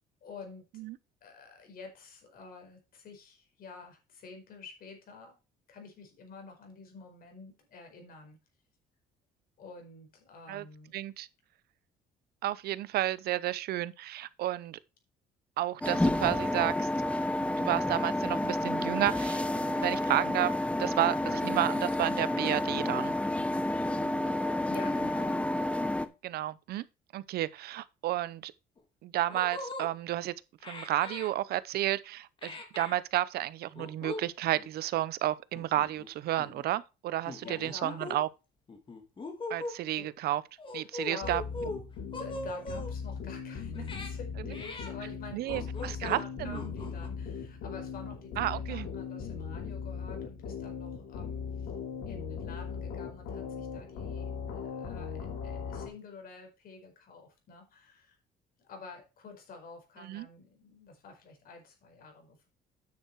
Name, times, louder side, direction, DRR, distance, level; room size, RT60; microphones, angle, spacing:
voice 1, 0.2-0.6 1.2-5.3 5.7-8.4 9.6-11.0 24.7-25.4 37.4-38.0 39.9-40.1 41.1-41.6 42.2-51.7 52.0-58.2 58.6-62.5, left 4 dB, 60° left, 4.7 m, -48 dB
voice 2, 10.9-11.3 12.4-14.8 15.6-16.9 17.4-23.1 26.2-26.8 27.1-28.5 29.0-30.3 30.6-38.3 39.5-40.4 40.7-41.4 45.3-46.6 48.4-48.9 60.0-60.3, right 14 dB, 70° right, 0.7 m, -31 dB
sound 1, 15.8-26.1, left 1 dB, 5° left, 0.9 m, -30 dB
sound 2, 28.8-28.9 29.3-29.9 30.6-31.3 32.4-33.0 33.7-34.2 34.5-34.7 35.5-36.1 36.4-36.6 37.3-38.2 38.7-39.8 40.6-41.8 42.1-42.9 43.7-44.1 44.5-44.9 45.5-46.2 46.5-47.1, left 2 dB, 30° left, 2.5 m, -40 dB
sound 3, 41.2-55.9, left 6 dB, 90° left, 4.0 m, -39 dB
9.5 x 6.7 x 4.6 m
cardioid pair, 110°, 17 cm